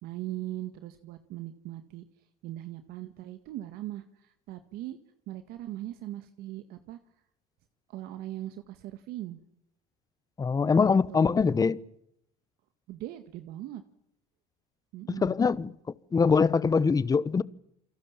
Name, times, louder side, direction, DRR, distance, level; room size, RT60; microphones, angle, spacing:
voice 1, 0.0-2.0 2.4-5.0 5.3-7.0 7.9-9.4 10.7-10.8 11.1-11.6 12.9-13.8 14.9-15.3, right 14 dB, 70° right, 1.9 m, -40 dB
voice 2, 10.4-11.8 15.1-15.7 16.1-17.4, left 5 dB, 20° left, 1.0 m, -23 dB
29.0 x 24.5 x 7.4 m
cardioid pair, 110°, 16 cm